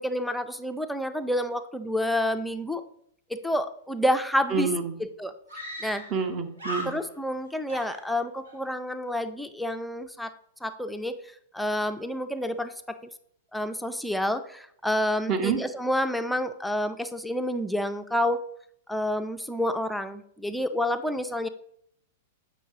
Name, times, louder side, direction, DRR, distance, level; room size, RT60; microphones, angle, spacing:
voice 1, 0.0-2.8 3.3-4.7 5.0-5.3 5.8-6.0 6.9-10.3 10.6-11.2 11.5-13.0 13.5-18.4 18.9-21.5, left 1 dB, ahead, 9 dB, 0.4 m, -29 dB
Screaming, 4.4-4.5 4.7-4.8 5.5-6.3 6.6-7.4 7.7-8.6, equal, 80° right, 1.9 m, -38 dB
voice 2, 4.5-5.0 6.1-7.0 15.3-15.6, right 5 dB, 35° right, 7 dB, 0.9 m, -28 dB
7.7 x 5.9 x 2.8 m, 0.70 s
hypercardioid pair, 105°, 0 cm